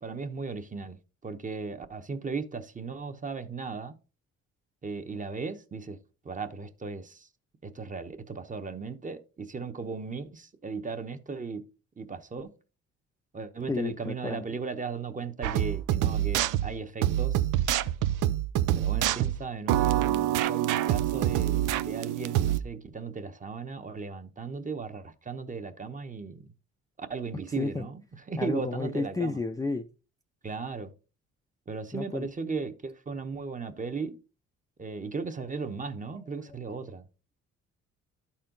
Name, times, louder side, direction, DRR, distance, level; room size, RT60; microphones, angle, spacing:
voice 1, 0.0-4.0 4.8-6.0 6.2-7.3 7.6-11.7 12.0-12.5 13.3-17.5 18.8-26.5 27.0-29.4 30.4-30.9 31.7-34.2 34.8-37.1, right 4 dB, 25° right, 1.0 m, -36 dB
voice 2, 13.7-14.4 27.6-27.8 28.4-29.9 31.9-32.3, left 3 dB, 10° left, 0.5 m, -31 dB
sound 1, 15.4-22.6, right 12 dB, 85° right, 0.6 m, -26 dB
12.0 x 4.4 x 3.9 m
cardioid pair, 90°, 30 cm